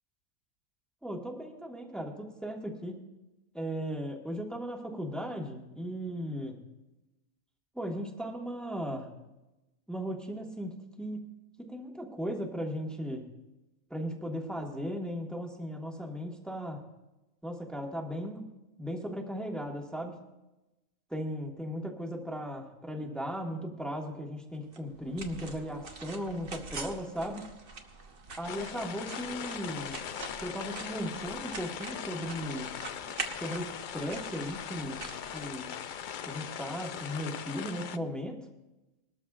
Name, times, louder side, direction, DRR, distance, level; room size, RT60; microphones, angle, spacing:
voice 1, 1.0-3.0 3.5-6.6 7.7-9.1 9.9-11.2 11.6-13.3 13.9-16.8 17.4-18.5 18.8-20.1 21.1-27.5 28.4-30.0 30.4-32.8 33.4-35.0 35.3-35.7 36.3-38.4, equal, ahead, 0 dB, 1.4 m, -37 dB
sound 1, 24.7-36.0, right 3 dB, 45° right, 1.2 m, -45 dB
sound 2, 28.4-38.0, left 8 dB, 70° left, 0.4 m, -40 dB
21.0 x 13.0 x 2.4 m, 1.0 s
omnidirectional pair, 1.4 m